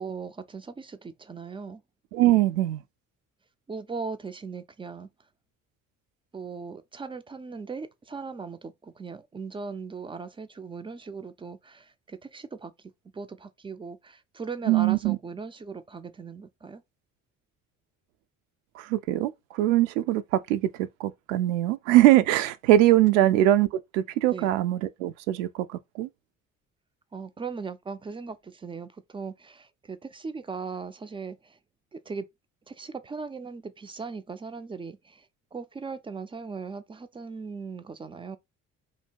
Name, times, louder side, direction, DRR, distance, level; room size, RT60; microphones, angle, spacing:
voice 1, 0.0-1.8 3.7-5.1 6.3-12.7 13.1-16.8 24.3-24.5 27.1-31.6 31.9-32.3 32.7-35.3 35.5-38.4, right 5 dB, 15° right, 0.3 m, -38 dB
voice 2, 2.1-2.8 14.7-15.2 18.8-23.7 23.9-26.1, right 14 dB, 70° right, 0.5 m, -22 dB
2.8 x 2.7 x 4.4 m
figure-of-eight pair, 45°, 40 cm